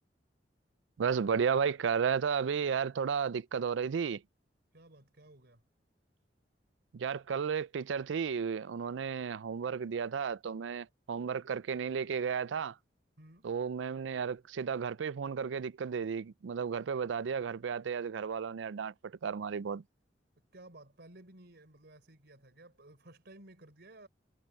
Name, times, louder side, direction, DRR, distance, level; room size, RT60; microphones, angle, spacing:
voice 1, 1.0-4.2 6.9-12.8 13.4-19.8, right 6 dB, 90° right, 0.4 m, -33 dB
voice 2, 4.7-5.7 13.2-13.5 20.4-24.1, right 1 dB, 65° right, 4.6 m, -55 dB
head